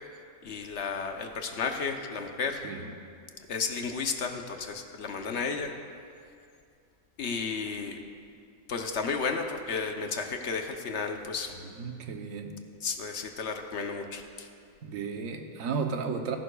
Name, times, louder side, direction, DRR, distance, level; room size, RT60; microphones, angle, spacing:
voice 1, 0.4-2.7 3.5-5.7 7.2-8.0 8.7-11.5 12.8-14.5, left 5 dB, 60° left, 5 dB, 1.0 m, -33 dB
voice 2, 11.6-12.5 14.8-16.4, right 5 dB, 75° right, 4 dB, 1.2 m, -34 dB
18.5 x 11.5 x 2.3 m, 2.4 s
omnidirectional pair, 1.4 m